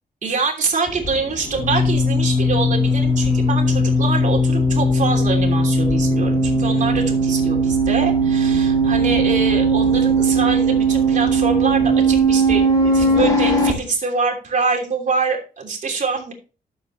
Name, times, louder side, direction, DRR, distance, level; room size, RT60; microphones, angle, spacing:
voice 1, 0.2-16.3, right 4 dB, 50° right, 1 dB, 3.1 m, -24 dB
sound 1, 0.9-13.7, right 1 dB, 20° left, 2.3 m, -18 dB
12.5 x 7.2 x 3.2 m, 0.34 s
wide cardioid pair, 155°, 16 cm